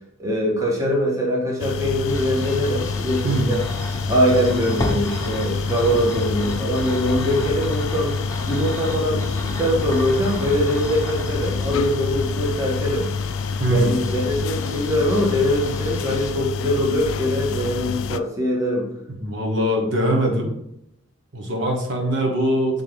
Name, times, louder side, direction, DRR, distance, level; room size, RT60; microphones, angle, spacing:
voice 1, 0.2-3.6 4.1-8.1 8.5-13.1 13.7-18.9, equal, 15° right, -3 dB, 1.2 m, -22 dB
sound 1, 1.6-18.2, left 5 dB, 80° left, 0.3 m, -28 dB
sound 2, 2.1-16.3, left 1 dB, 15° left, 0.9 m, -34 dB
voice 2, 13.6-13.9 19.2-20.5 21.3-22.8, equal, 60° right, 1 dB, 1.2 m, -22 dB
7.7 x 3.8 x 3.5 m, 0.79 s
head